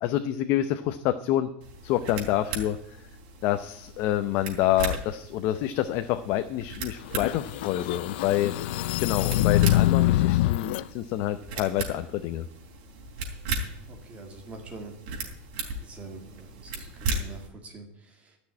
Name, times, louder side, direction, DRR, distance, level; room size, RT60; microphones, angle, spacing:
voice 1, 0.0-1.5 1.8-2.8 3.4-8.6 9.0-12.4, left 13 dB, 50° left, 9 dB, 0.7 m, -27 dB
sound 1, 1.6-17.5, right 3 dB, 70° right, 3.4 m, -37 dB
sound 2, 7.1-10.8, left 15 dB, 85° left, 0.5 m, -24 dB
voice 2, 13.9-15.0 15.8-18.4, right 3 dB, 25° right, 3 dB, 2.2 m, -45 dB
13.5 x 6.4 x 9.7 m, 0.72 s
supercardioid pair, 160°, 6 cm